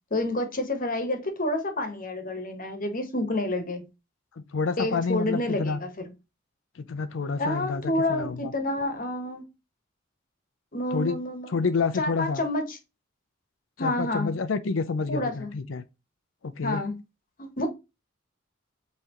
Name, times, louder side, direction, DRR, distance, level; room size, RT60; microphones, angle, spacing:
voice 1, 0.1-3.9 4.8-5.9 7.4-9.4 10.7-12.8 13.8-14.3 15.1-15.5 16.6-16.9 17.4-17.7, left 1 dB, 45° left, 1.1 m, -29 dB
voice 2, 4.5-5.8 6.8-7.8 8.1-8.5 10.9-11.2 11.5-12.4 13.8-15.8 16.4-16.8, left 4 dB, 80° left, 0.5 m, -28 dB
5.6 x 3.2 x 2.9 m
head